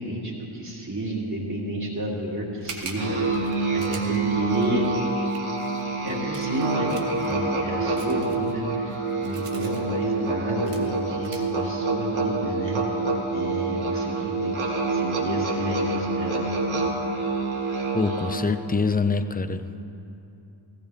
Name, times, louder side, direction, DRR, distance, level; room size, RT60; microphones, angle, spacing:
voice 1, 0.0-4.9 6.0-12.8 13.3-16.5, right 1 dB, 35° right, -7 dB, 2.8 m, -31 dB
sound 1, 2.6-7.3 8.0-9.8 10.3-10.4 10.6-10.9 11.2-11.5, right 5 dB, 90° right, 1.5 m, -42 dB
Musical instrument, 3.0-18.5, right 3 dB, 70° right, 2.6 m, -27 dB
voice 2, 17.9-19.9, left 4 dB, 20° left, 10 dB, 0.5 m, -25 dB
17.5 x 16.5 x 3.5 m, 2.8 s
wide cardioid pair, 110°, 50 cm